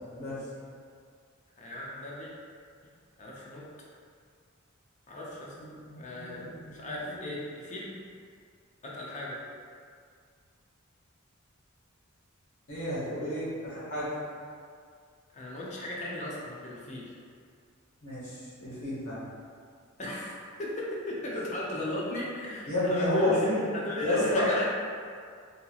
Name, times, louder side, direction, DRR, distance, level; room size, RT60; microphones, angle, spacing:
voice 1, 0.1-0.4 5.6-7.3 12.7-14.1 18.0-18.3 18.6-19.2 22.7-23.6 24.0-24.4, left 1 dB, 65° left, -11 dB, 1.1 m, -31 dB
voice 2, 1.6-2.3 3.2-3.6 5.1-5.5 6.0-7.9 8.8-9.4 15.3-17.2 20.0-23.4 23.7-24.7, left 1 dB, 35° left, -5 dB, 0.5 m, -36 dB
2.8 x 2.8 x 2.3 m, 2.2 s
head